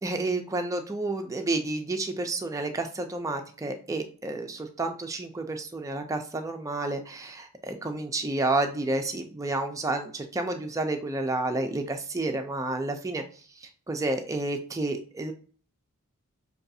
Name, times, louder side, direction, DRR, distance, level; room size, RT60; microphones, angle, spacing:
voice 1, 0.0-13.2 13.6-15.3, right 2 dB, 15° right, 4 dB, 0.4 m, -30 dB
5.6 x 2.3 x 2.6 m, 0.42 s
head